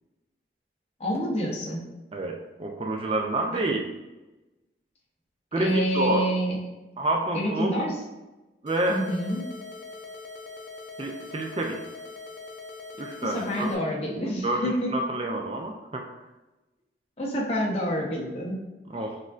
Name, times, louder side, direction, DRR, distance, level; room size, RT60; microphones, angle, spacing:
voice 1, 1.0-1.9 3.6-3.7 5.6-6.6 7.3-8.0 8.9-9.5 13.2-14.9 17.2-18.6, equal, 35° left, -3 dB, 0.8 m, -28 dB
voice 2, 2.1-3.9 5.5-6.3 7.0-7.7 8.6-9.0 11.0-11.8 13.0-13.7 14.4-16.1 18.9-19.2, right 2 dB, 30° right, 2 dB, 0.3 m, -28 dB
sound 1, 8.7-13.7, left 3 dB, 80° left, 0.4 m, -42 dB
6.0 x 2.6 x 2.4 m, 1.1 s
head